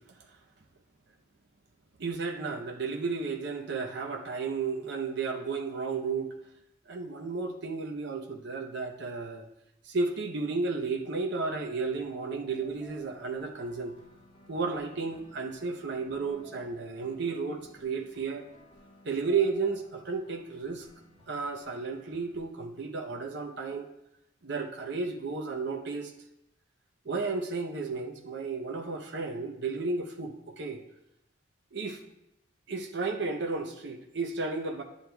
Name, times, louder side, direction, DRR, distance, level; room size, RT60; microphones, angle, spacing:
voice 1, 2.0-6.3 6.9-9.4 9.9-14.0 14.5-18.4 19.0-20.9 21.3-23.8 24.4-26.1 27.0-30.8 31.7-32.0 32.7-34.8, right 4 dB, 60° right, 3 dB, 0.7 m, -33 dB
sound 1, 10.8-22.5, left 2 dB, 30° left, 2.9 m, -57 dB
10.0 x 7.8 x 2.3 m, 0.85 s
head